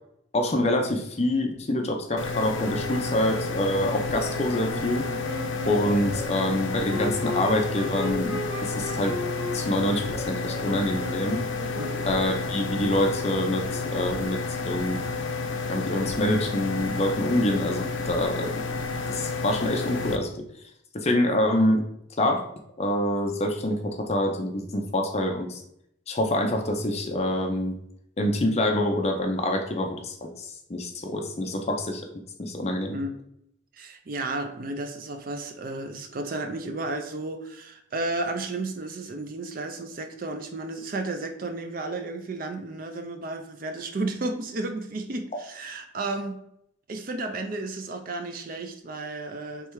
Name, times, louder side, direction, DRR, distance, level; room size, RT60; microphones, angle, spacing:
voice 1, 0.3-5.1 5.7-9.2 9.5-11.4 12.1-15.0 15.7-18.7 19.1-20.4 20.9-21.8 22.2-22.5 22.8-25.6 26.1-27.7 28.2-32.1 32.4-33.0, left 1 dB, 30° left, 3 dB, 0.6 m, -26 dB
sound 1, 2.2-20.2, left 3 dB, 75° left, 0.6 m, -31 dB
Wind instrument woodwind instrument, 4.1-12.5, equal, 80° right, 1.8 m, -37 dB
sound 2, 11.8-14.2, left 1 dB, 25° right, 1.1 m, -44 dB
voice 2, 33.7-46.4 46.9-49.7, right 2 dB, 45° right, 7 dB, 0.4 m, -33 dB
3.4 x 3.2 x 4.6 m, 0.76 s
head